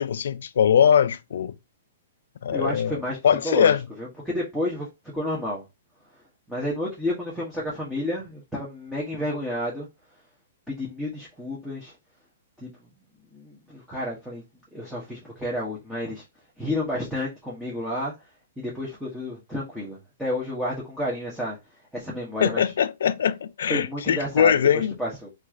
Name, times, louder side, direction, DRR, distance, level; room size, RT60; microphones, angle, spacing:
voice 1, 0.0-1.5 2.4-3.0 3.2-3.8 22.4-25.0, left 8 dB, 75° left, 0.3 m, -21 dB
voice 2, 2.5-3.2 3.4-4.9 5.1-5.6 6.5-9.9 10.7-11.9 12.6-12.7 13.3-14.4 14.7-16.2 16.6-18.1 18.6-21.6 21.9-22.7 23.7-24.6 25.0-25.3, left 1 dB, 5° right, 1.0 m, -30 dB
2.9 x 2.4 x 3.6 m
hypercardioid pair, 140°, 0 cm